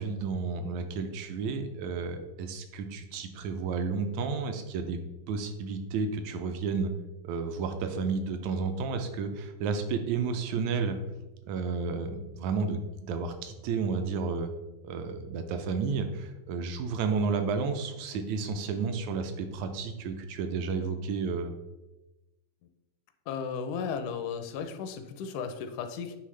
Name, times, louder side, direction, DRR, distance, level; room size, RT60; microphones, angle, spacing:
voice 1, 0.0-5.0 5.3-6.9 7.2-11.0 11.5-14.5 14.8-21.5, right 5 dB, 80° right, 7 dB, 1.6 m, -31 dB
voice 2, 23.3-26.2, left 6 dB, 80° left, 8 dB, 2.0 m, -35 dB
9.2 x 3.4 x 3.2 m, 1.0 s
omnidirectional pair, 3.6 m